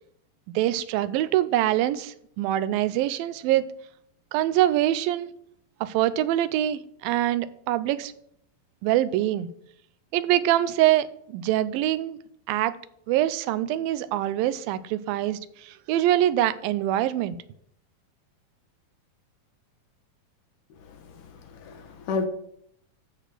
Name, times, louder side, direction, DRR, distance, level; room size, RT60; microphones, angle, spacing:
voice 1, 0.6-3.7 4.3-5.3 5.8-8.1 8.8-9.5 10.1-12.2 12.5-12.7 13.1-17.4, right 13 dB, 85° right, 2.4 m, -24 dB
voice 2, 20.8-22.3, left 4 dB, 70° left, 2.4 m, -33 dB
13.0 x 5.0 x 7.6 m
omnidirectional pair, 4.1 m